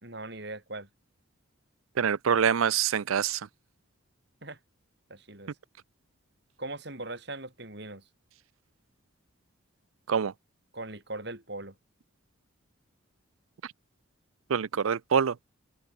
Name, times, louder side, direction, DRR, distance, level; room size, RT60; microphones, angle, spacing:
voice 1, 0.0-0.9 4.4-4.6 5.1-5.5 6.6-8.0 10.7-11.7, right 2 dB, 55° right, 4.8 m, -40 dB
voice 2, 2.0-3.4 10.1-10.3 14.5-15.3, right 7 dB, 80° right, 0.5 m, -25 dB
open air
head